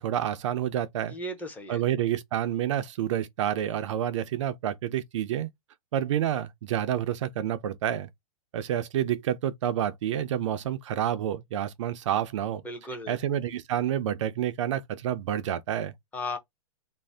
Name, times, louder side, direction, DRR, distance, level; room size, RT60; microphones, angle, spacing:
voice 1, 0.0-1.2 1.7-5.5 5.9-8.1 8.5-12.6 13.1-15.9, right 11 dB, 60° right, 0.4 m, -29 dB
voice 2, 1.1-1.8 12.6-13.2 16.1-16.4, left 1 dB, 10° left, 0.5 m, -35 dB
2.4 x 2.0 x 3.3 m
hypercardioid pair, 140°, 18 cm